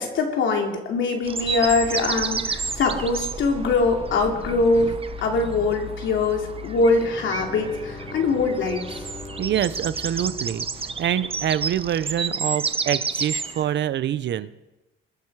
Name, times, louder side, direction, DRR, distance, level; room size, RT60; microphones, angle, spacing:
voice 1, 0.0-4.9 5.2-9.0, left 3 dB, 75° left, 2 dB, 2.8 m, -23 dB
sound 1, 1.3-13.8, right 5 dB, 30° right, 0.9 m, -31 dB
sound 2, 1.5-12.2, left 3 dB, 15° left, 3.7 m, -40 dB
Bowed string instrument, 6.9-11.4, left 3 dB, 40° left, 4.4 m, -42 dB
voice 2, 9.4-10.7 11.0-14.5, right 10 dB, 65° right, 16 dB, 0.7 m, -25 dB
21.5 x 9.8 x 4.8 m, 1.0 s
cardioid pair, 90°, 20 cm